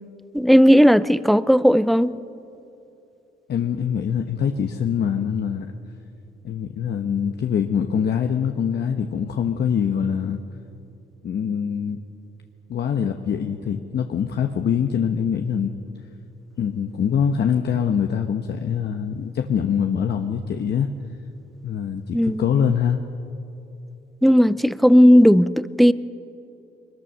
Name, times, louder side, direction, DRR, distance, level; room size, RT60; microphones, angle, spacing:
voice 1, 0.3-2.2 22.1-22.7 24.2-25.9, equal, ahead, 0.5 m, -15 dB
voice 2, 3.5-5.7 6.4-10.4 11.2-12.0 12.7-15.7 16.6-20.9 21.6-23.0, left 7 dB, 55° left, 1.1 m, -24 dB
22.5 x 20.5 x 6.4 m
cardioid pair, 90°, 20 cm